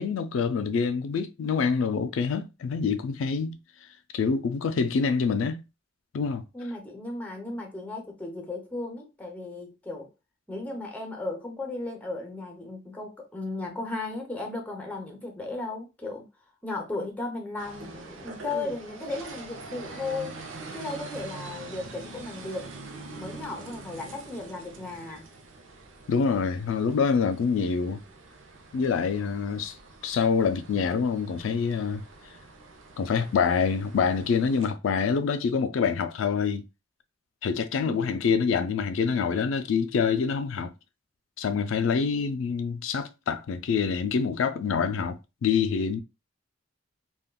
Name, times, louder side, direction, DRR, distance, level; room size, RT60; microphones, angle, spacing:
voice 1, 0.0-3.6 4.1-5.6 6.1-6.4 26.1-28.0 28.7-29.7 30.0-32.0 33.0-36.6 37.4-40.7 41.4-46.0, left 5 dB, 85° left, 0.4 m, -26 dB
voice 2, 6.5-10.1 10.5-16.2 16.6-20.4 20.7-22.8 23.2-25.3 37.8-38.3 42.0-42.4, left 2 dB, 10° left, 0.7 m, -36 dB
sound 1, 17.6-34.7, right 3 dB, 90° right, 0.6 m, -44 dB
3.5 x 2.3 x 2.2 m
head